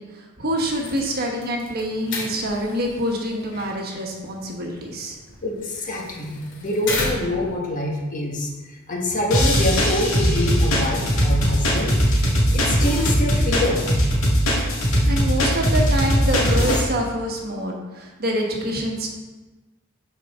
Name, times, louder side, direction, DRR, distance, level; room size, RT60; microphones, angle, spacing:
voice 1, 0.0-5.2 15.0-19.1, equal, 45° right, 0 dB, 1.2 m, -26 dB
sound 1, 0.6-7.5, left 2 dB, 60° left, 2.3 m, -34 dB
voice 2, 5.4-8.5 8.9-11.9 12.5-13.9, left 1 dB, 40° left, -1 dB, 1.4 m, -25 dB
sound 2, 9.3-16.8, equal, 80° left, 1.9 m, -20 dB
11.5 x 4.8 x 3.6 m, 1.2 s
head